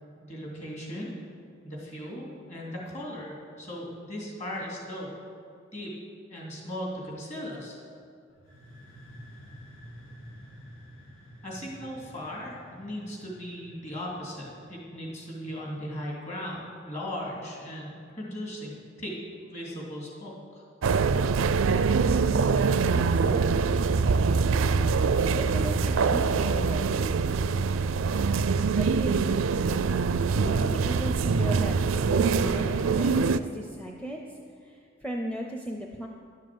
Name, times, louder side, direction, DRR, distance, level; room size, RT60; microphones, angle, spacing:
voice 1, 0.2-1.1 1.6-5.2 5.7-5.9 6.3-7.8 11.4-20.6, equal, 35° left, -3 dB, 2.9 m, -37 dB
sound 1, 8.3-15.9, equal, 85° left, 2.2 m, -50 dB
sound 2, 20.8-33.4, right 5 dB, 75° right, 0.4 m, -24 dB
voice 2, 22.9-23.7 25.3-27.1 28.7-29.5 30.3-36.1, equal, 5° left, 1 dB, 0.6 m, -37 dB
11.0 x 7.5 x 7.7 m, 2.3 s
head